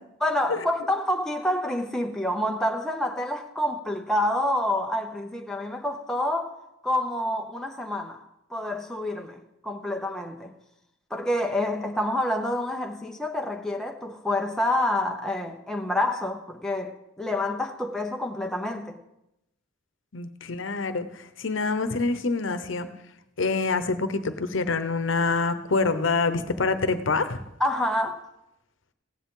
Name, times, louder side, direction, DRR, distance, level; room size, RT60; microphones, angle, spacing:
voice 1, 0.2-8.2 8.5-10.5 11.1-19.0 27.6-28.2, left 1 dB, 5° left, 0.7 m, -28 dB
voice 2, 20.1-22.9 23.4-27.4, left 3 dB, 75° left, 0.9 m, -26 dB
16.0 x 10.0 x 3.8 m
head